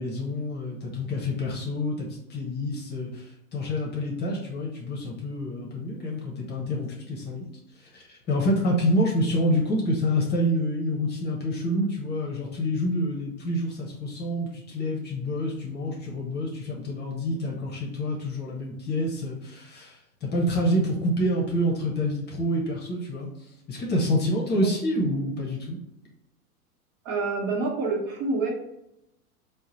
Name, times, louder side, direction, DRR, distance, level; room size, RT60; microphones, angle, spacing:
voice 1, 0.0-7.5 7.8-25.8, equal, 25° left, -2 dB, 0.8 m, -27 dB
voice 2, 27.0-28.5, right 3 dB, 50° right, -1 dB, 1.2 m, -27 dB
3.7 x 2.2 x 3.0 m, 0.83 s
hypercardioid pair, 100°, 45 cm